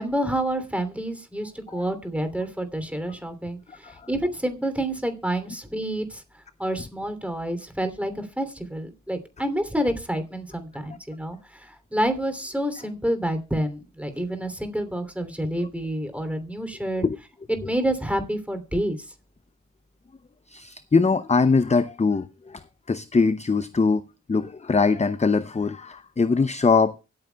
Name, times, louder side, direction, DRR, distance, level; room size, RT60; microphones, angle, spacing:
voice 1, 0.0-6.2 6.6-17.0 17.5-19.1, right 1 dB, 5° right, 2.9 m, -28 dB
voice 2, 20.5-22.6 22.9-24.0 24.3-26.9, left 4 dB, 20° left, 0.6 m, -22 dB
24.0 x 8.7 x 2.3 m
cardioid pair, 40°, 31 cm